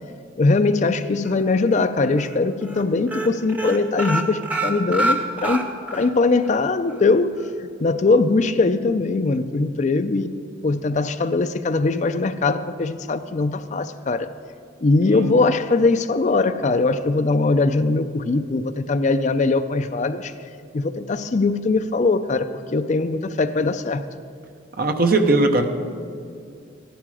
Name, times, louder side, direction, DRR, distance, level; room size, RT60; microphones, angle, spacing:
voice 1, 0.4-5.7 5.9-10.3 10.6-14.3 14.8-20.3 20.7-24.0, left 3 dB, 40° left, 11 dB, 0.4 m, -21 dB
sound 1, 1.2-1.8 2.2-2.4 2.6-2.8 3.1-6.1 6.4-6.5 6.9-7.0, right 1 dB, 10° right, 0.8 m, -26 dB
voice 2, 15.1-15.4 24.8-25.7, right 2 dB, 50° right, 6 dB, 0.9 m, -19 dB
14.0 x 11.0 x 4.8 m, 2.3 s
head